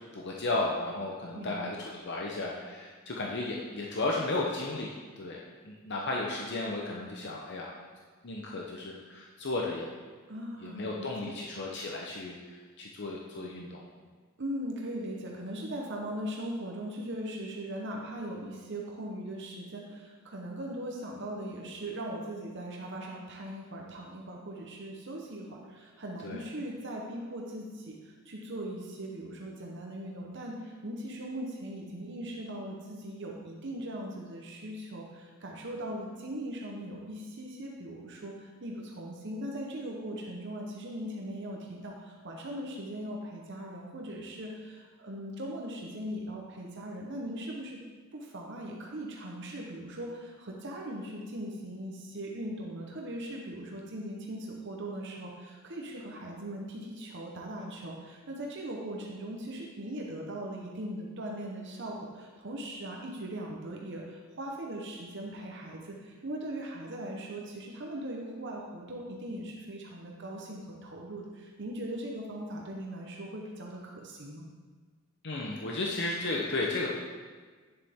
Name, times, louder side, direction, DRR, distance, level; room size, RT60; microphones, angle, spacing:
voice 1, 0.1-4.9 5.2-5.4 5.6-7.7 8.2-9.9 10.6-13.8 26.2-26.4 75.2-76.9, left 2 dB, 55° left, -1 dB, 0.8 m, -34 dB
voice 2, 1.3-1.8 10.3-11.4 14.4-47.8 48.1-74.5, right 1 dB, 55° right, -1 dB, 1.0 m, -39 dB
9.9 x 7.1 x 3.6 m, 1.5 s
head